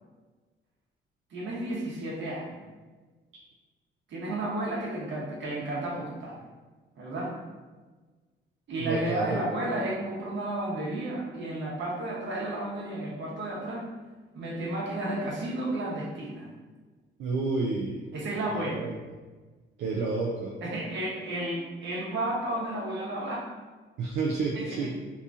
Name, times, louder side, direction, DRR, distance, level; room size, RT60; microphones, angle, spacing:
voice 1, 1.3-2.6 4.1-6.4 7.0-7.4 8.7-13.9 14.3-16.5 18.1-18.8 20.6-23.4 24.5-24.9, right 1 dB, 65° right, -4 dB, 1.1 m, -32 dB
voice 2, 8.8-9.4 17.2-18.0 18.5-19.0 19.8-20.6 24.0-25.0, right 3 dB, 85° right, -1 dB, 0.4 m, -30 dB
2.8 x 2.6 x 3.5 m, 1.3 s
cardioid pair, 90°, 20 cm